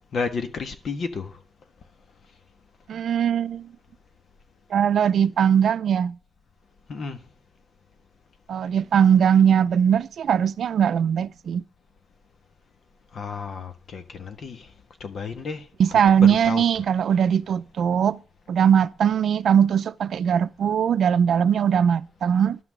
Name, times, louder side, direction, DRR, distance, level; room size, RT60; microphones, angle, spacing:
voice 1, 0.1-1.4 6.9-7.2 13.1-14.7 15.0-15.7 15.9-16.0 16.3-16.8, left 5 dB, 55° left, 1.5 m, -32 dB
voice 2, 2.9-3.7 4.7-6.2 8.5-11.6 15.8-18.2 18.5-22.6, right 8 dB, 70° right, 0.5 m, -20 dB
12.0 x 6.1 x 8.9 m
wide cardioid pair, 150°, 0 cm